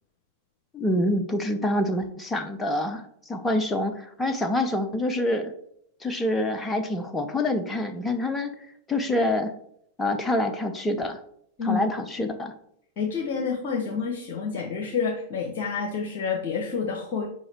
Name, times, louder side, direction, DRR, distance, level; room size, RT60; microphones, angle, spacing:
voice 1, 0.7-5.5 6.0-8.5 8.9-9.5 10.0-11.2 11.6-12.5, left 1 dB, 15° left, 6 dB, 0.7 m, -26 dB
voice 2, 13.0-17.3, left 5 dB, 45° left, 1 dB, 1.3 m, -28 dB
6.4 x 5.0 x 4.4 m, 0.68 s
figure-of-eight pair, 90°, 0 cm